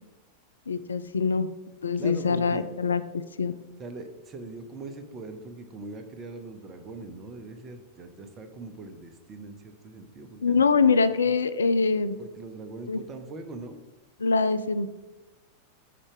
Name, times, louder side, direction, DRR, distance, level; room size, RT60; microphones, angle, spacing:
voice 1, 0.7-1.5 1.8-3.5 10.4-12.2 12.9-13.0 14.2-14.9, left 4 dB, 70° left, 12 dB, 0.3 m, -24 dB
voice 2, 1.9-2.7 3.8-10.6 10.9-11.3 12.2-13.8, right 3 dB, 25° right, 8 dB, 0.8 m, -41 dB
5.9 x 4.3 x 4.9 m, 1.1 s
figure-of-eight pair, 90°, 0 cm